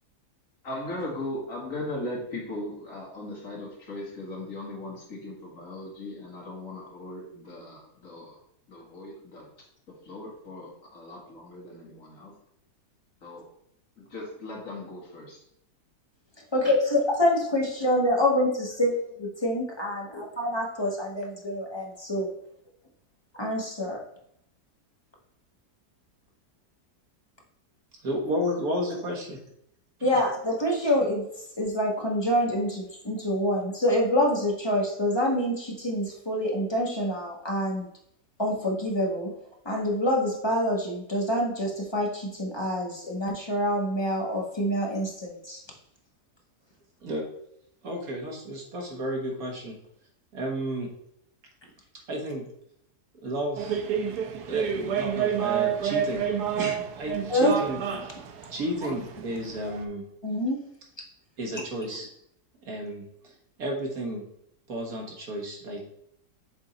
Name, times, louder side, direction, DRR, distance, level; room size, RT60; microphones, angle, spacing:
voice 1, 0.6-8.4 8.7-9.5 10.0-12.3 13.2-13.5 14.0-15.4, left 1 dB, 55° left, -3 dB, 2.2 m, -38 dB
voice 2, 16.5-18.9 19.2-22.3 23.3-24.0 30.0-31.2 31.6-37.9 38.4-39.3 39.6-45.6 57.3-57.5 58.8-58.9 60.2-60.6, left 1 dB, 20° left, -1 dB, 1.0 m, -26 dB
voice 3, 28.0-29.4 47.0-47.2 47.8-49.8 50.3-50.9 52.1-52.4 53.2-53.8 54.1-54.2 54.5-56.2 56.6-57.8 58.5-60.0 61.4-62.1 62.7-63.0 63.6-64.2 64.7-65.8, equal, 65° right, 0 dB, 1.8 m, -32 dB
sound 1, 53.6-59.9, right 8 dB, 80° right, 1.2 m, -29 dB
7.0 x 3.7 x 4.0 m, 0.73 s
omnidirectional pair, 1.7 m